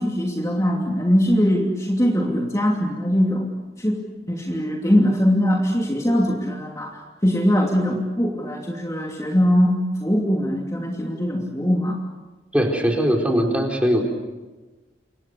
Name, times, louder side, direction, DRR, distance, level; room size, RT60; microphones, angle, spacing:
voice 1, 0.0-3.5 3.8-4.0 4.3-9.7 10.0-12.0, equal, 20° left, 0 dB, 2.8 m, -21 dB
voice 2, 12.5-14.1, equal, 5° right, 1 dB, 4.2 m, -20 dB
29.0 x 26.0 x 6.7 m, 1.2 s
head